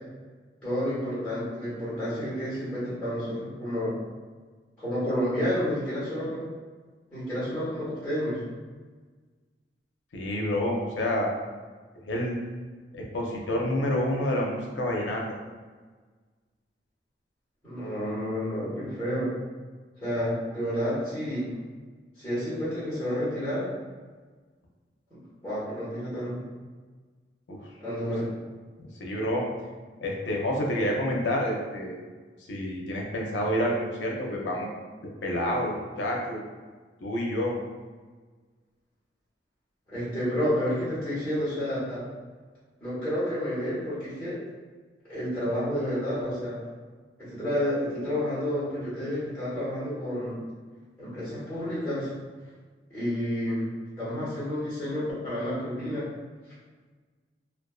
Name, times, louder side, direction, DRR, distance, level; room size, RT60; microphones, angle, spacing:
voice 1, 0.6-3.9 4.8-6.5 7.1-8.4 17.6-19.4 20.0-21.5 22.2-23.7 25.4-26.4 27.8-28.3 39.9-42.1 42.8-44.4 45.1-46.6 47.2-50.4 51.0-52.1 52.9-53.7 54.0-56.1, equal, 10° left, -12 dB, 1.1 m, -30 dB
voice 2, 10.1-11.3 12.0-12.4 12.9-15.2 27.5-27.6 29.0-29.4 30.0-32.0 32.5-34.7 35.2-36.4 37.0-37.5, left 1 dB, 85° left, -1 dB, 0.5 m, -28 dB
2.4 x 2.3 x 2.3 m, 1.4 s
head